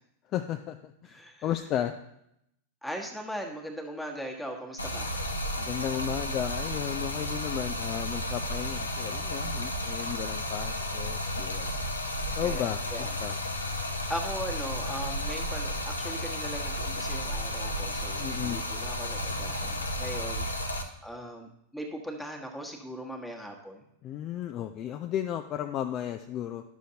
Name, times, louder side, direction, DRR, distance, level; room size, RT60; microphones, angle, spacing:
voice 1, 0.3-1.9 5.6-11.8 12.4-13.4 18.2-18.6 24.0-26.6, left 11 dB, 35° left, 7 dB, 0.4 m, -34 dB
voice 2, 1.1-1.4 2.8-5.1 12.4-13.1 14.1-20.5 21.0-23.9, equal, 5° left, 0 dB, 1.3 m, -39 dB
Stream, 4.8-20.8, left 1 dB, 85° left, 0.7 m, -33 dB
11.5 x 6.4 x 2.8 m, 0.79 s
figure-of-eight pair, 90°, 0 cm